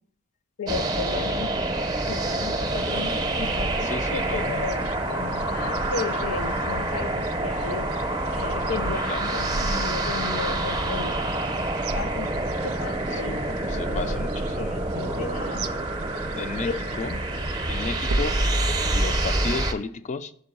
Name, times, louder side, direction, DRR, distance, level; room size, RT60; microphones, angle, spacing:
voice 1, 0.6-1.5 2.1-7.9 8.3-11.3 11.9-14.3 14.6-15.7 16.6-16.7, left 4 dB, 80° left, 0.7 m, -34 dB
sound 1, 0.7-19.7, right 2 dB, 20° right, 0.6 m, -27 dB
sound 2, 2.6-18.5, right 3 dB, 70° right, 0.4 m, -37 dB
voice 2, 3.8-4.4 9.1-9.3 13.1-13.2 13.7-14.6 16.4-16.7 17.0-17.2 17.7-18.4 18.9-20.3, left 4 dB, 35° left, 0.3 m, -33 dB
5.3 x 5.3 x 5.3 m
head